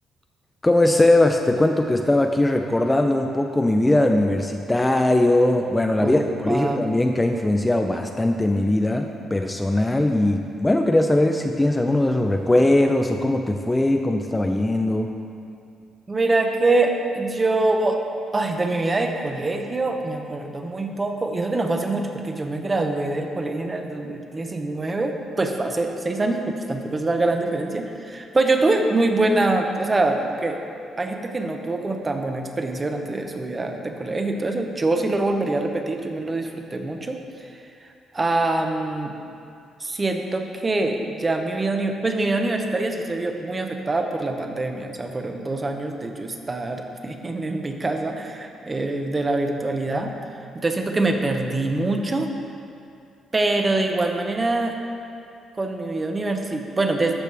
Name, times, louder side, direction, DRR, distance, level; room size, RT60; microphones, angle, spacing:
voice 1, 0.6-15.1, left 1 dB, 15° left, 4 dB, 0.4 m, -20 dB
voice 2, 6.0-6.8 16.1-18.0 18.3-30.6 31.0-37.5 37.8-39.1 39.8-50.1 50.6-52.3 53.3-54.8 55.6-57.2, right 2 dB, 25° right, 4 dB, 0.8 m, -24 dB
13.5 x 5.1 x 3.3 m, 2.5 s
cardioid pair, 90°, 0 cm